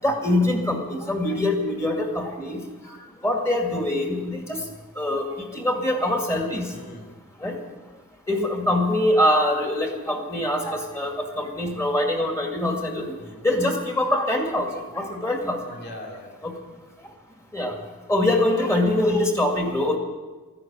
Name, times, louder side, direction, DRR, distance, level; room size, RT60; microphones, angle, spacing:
voice 1, 0.0-2.6 3.2-4.6 5.0-6.6 7.4-7.6 8.3-13.0 13.4-14.7 14.9-15.6 16.4-16.5 17.5-17.7 18.1-20.0, left 1 dB, 15° left, 2 dB, 2.2 m, -23 dB
voice 2, 6.7-7.2 13.2-13.4 15.7-16.4, left 1 dB, 50° left, 0 dB, 2.8 m, -41 dB
13.5 x 10.5 x 7.5 m, 1.3 s
head